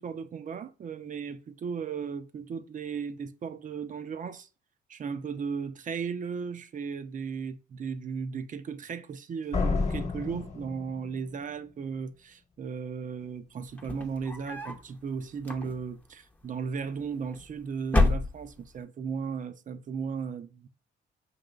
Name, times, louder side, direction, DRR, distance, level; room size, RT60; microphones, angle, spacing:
voice 1, 0.0-4.5 4.9-20.7, right 6 dB, 40° right, 0.5 m, -36 dB
Slam, 9.5-11.4, left 4 dB, 35° left, 1.1 m, -30 dB
sound 1, 13.7-14.9 15.4-16.1 17.0-17.5 17.8-18.8, left 2 dB, 10° left, 0.7 m, -28 dB
5.4 x 2.9 x 2.4 m
cardioid pair, 90°, 20 cm